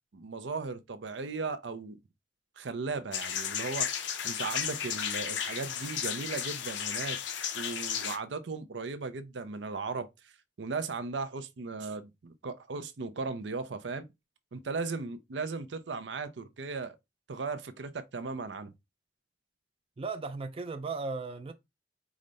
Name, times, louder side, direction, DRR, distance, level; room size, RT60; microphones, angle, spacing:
voice 1, 0.1-2.0 2.6-7.2 7.5-10.1 10.6-14.1 14.5-17.0 17.3-18.7, right 4 dB, 80° right, 0.6 m, -37 dB
sound 1, 3.1-8.2, left 8 dB, 80° left, 0.6 m, -34 dB
voice 2, 20.0-21.5, right 4 dB, 30° right, 0.4 m, -36 dB
4.9 x 2.1 x 3.9 m
head